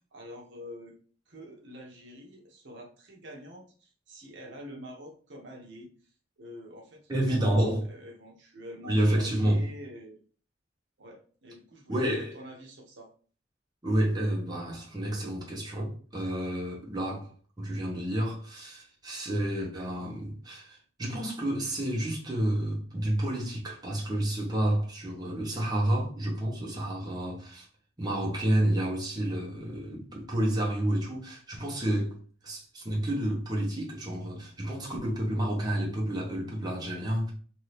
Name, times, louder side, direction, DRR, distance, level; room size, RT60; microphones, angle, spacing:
voice 1, 0.1-0.9 1.3-10.2 11.0-13.1, equal, 75° right, 0.8 m, -46 dB
voice 2, 7.1-7.9 8.8-9.6 11.9-12.3 13.8-17.3 17.6-27.7 28.0-32.1 32.4-37.3, right 1 dB, 25° right, 0.9 m, -29 dB
2.8 x 2.6 x 3.2 m
head